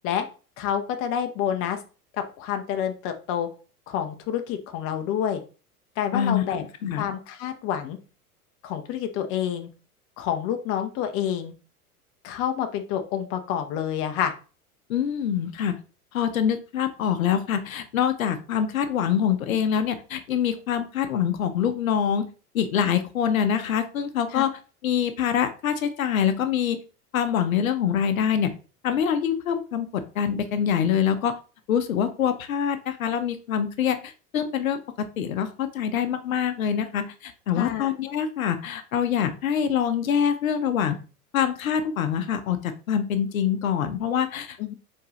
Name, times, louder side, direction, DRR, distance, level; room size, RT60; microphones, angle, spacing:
voice 1, 0.6-1.8 2.4-3.5 3.9-5.4 6.0-6.6 6.9-8.0 8.6-9.7 10.2-11.5 12.2-14.3 24.3-24.4 37.5-37.9 44.6-44.7, left 9 dB, 30° left, 7 dB, 0.6 m, -28 dB
voice 2, 6.1-7.1 14.9-15.8 16.1-22.3 22.5-24.5 24.8-26.8 27.1-28.5 28.8-31.4 31.7-41.0 41.3-44.7, left 8 dB, 65° left, 10 dB, 0.7 m, -25 dB
4.5 x 3.6 x 3.1 m, 0.35 s
figure-of-eight pair, 85°, 45 cm